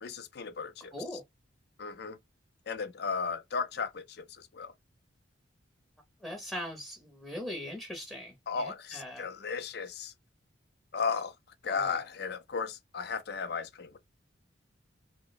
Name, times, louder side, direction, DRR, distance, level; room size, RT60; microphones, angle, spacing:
voice 1, 0.0-1.2 1.8-2.2 2.7-4.7 8.5-10.1 10.9-11.3 11.6-14.0, left 5 dB, 55° left, 0.5 m, -35 dB
voice 2, 6.2-9.2 11.7-11.9, left 1 dB, ahead, 0.7 m, -40 dB
2.9 x 2.1 x 3.9 m
head